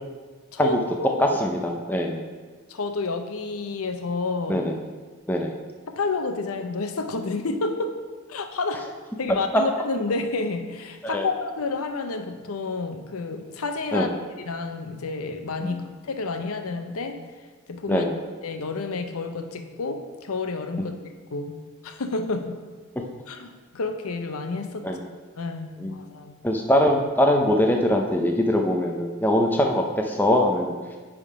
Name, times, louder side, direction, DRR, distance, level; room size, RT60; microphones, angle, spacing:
voice 1, 0.5-1.4 2.7-4.6 6.0-8.0 8.3-8.9 9.2-14.1 14.4-15.8 16.1-17.2 17.7-18.1 18.4-20.9 21.3-22.6 23.3-24.9 25.4-26.4, left 3 dB, 75° left, 7 dB, 0.6 m, -30 dB
voice 2, 1.2-2.3 4.5-4.7 5.3-5.5 9.5-9.6 11.0-11.3 13.9-14.1 15.6-15.8 17.9-18.1 20.8-20.9 23.0-23.1 24.8-25.0 25.8-25.9 26.4-30.7, left 1 dB, 10° left, 2 dB, 0.5 m, -22 dB
9.7 x 3.7 x 4.9 m, 1.4 s
head